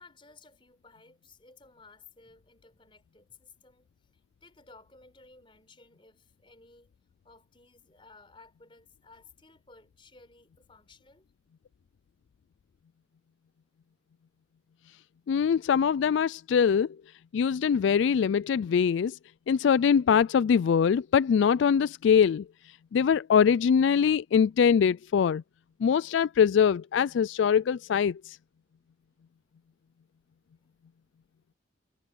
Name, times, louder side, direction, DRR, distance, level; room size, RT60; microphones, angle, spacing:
voice 1, 0.0-6.9 7.2-11.3 30.6-30.8, left 3 dB, 25° left, 4.7 m, -56 dB
voice 2, 15.3-16.9 17.3-19.2 19.5-22.4 22.9-25.4 25.8-28.4, left 7 dB, 70° left, 0.3 m, -23 dB
head